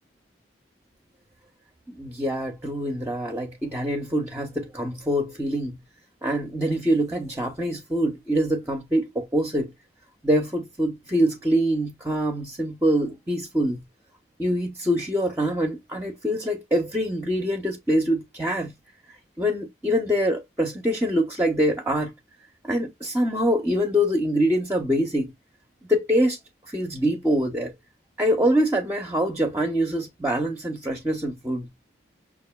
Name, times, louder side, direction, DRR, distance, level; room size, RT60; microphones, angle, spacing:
voice 1, 1.9-5.8 6.2-9.7 10.2-13.8 14.4-18.7 19.4-22.1 22.6-25.3 25.9-26.4 26.7-27.7 28.2-31.7, equal, 10° right, 0.6 m, -24 dB
5.8 x 2.5 x 2.2 m
head